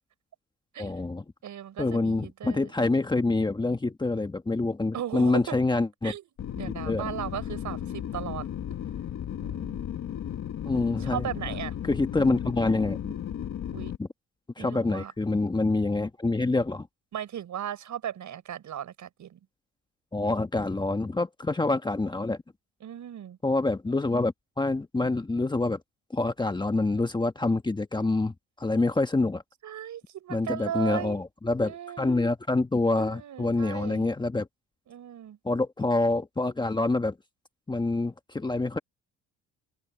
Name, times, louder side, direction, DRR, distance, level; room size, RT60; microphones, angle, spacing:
voice 1, 0.8-1.2 1.8-6.1 6.9-7.0 10.6-11.3 11.9-13.1 14.0-14.1 14.6-16.9 20.1-22.4 23.4-25.8 26.1-29.4 30.3-34.5 35.4-37.2 37.7-38.8, left 2 dB, 15° left, 1.3 m, -26 dB
voice 2, 1.4-2.7 4.9-5.6 6.0-6.2 6.5-8.5 9.4-9.8 11.0-11.7 13.7-13.9 14.6-15.1 17.1-19.4 22.8-23.4 29.6-31.2 31.6-32.2 33.0-34.1 34.9-35.4, right 10 dB, 60° right, 6.5 m, -37 dB
sound 1, 6.4-14.0, left 10 dB, 50° left, 1.7 m, -35 dB
cardioid pair, 120°, 34 cm